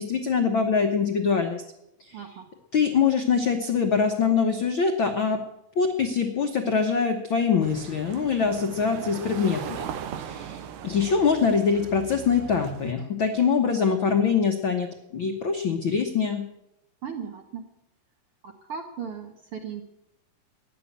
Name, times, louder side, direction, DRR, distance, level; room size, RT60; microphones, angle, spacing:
voice 1, 0.0-1.6 2.0-2.4 2.7-5.4 5.7-9.9 10.2-14.9 15.1-16.4, left 6 dB, 70° left, 5 dB, 1.1 m, -24 dB
voice 2, 2.1-2.4 17.0-17.6 18.4-19.8, right 7 dB, 65° right, 5 dB, 1.4 m, -37 dB
sound 1, 7.6-12.9, right 8 dB, 85° right, 2.6 m, -38 dB
14.5 x 10.0 x 9.0 m, 0.88 s
omnidirectional pair, 3.9 m